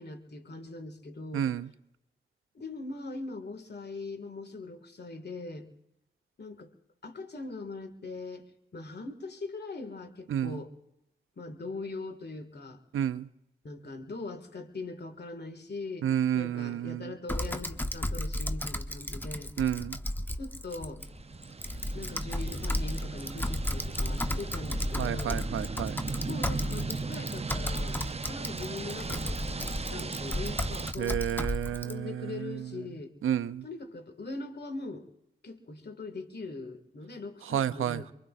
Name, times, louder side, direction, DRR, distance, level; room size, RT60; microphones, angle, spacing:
voice 1, 0.0-1.5 2.5-5.7 6.4-6.7 7.0-10.7 11.4-12.8 13.6-16.1 16.3-19.5 20.4-21.1 21.9-25.4 26.3-28.0 28.3-31.2 31.7-33.1 33.6-35.1 35.4-38.1, left 3 dB, 55° left, 8 dB, 1.9 m, -41 dB
voice 2, 1.3-1.7 10.3-10.6 12.9-13.3 16.0-17.1 19.6-20.0 25.0-26.0 31.0-32.7 33.2-33.6 37.5-38.1, right 10 dB, 85° right, 13 dB, 0.5 m, -30 dB
Typing, 17.3-31.9, left 1 dB, 10° left, 0.9 m, -34 dB
sound 1, 21.0-30.9, right 4 dB, 30° right, 0.6 m, -38 dB
24.0 x 23.0 x 2.5 m, 0.87 s
cardioid pair, 40°, 21 cm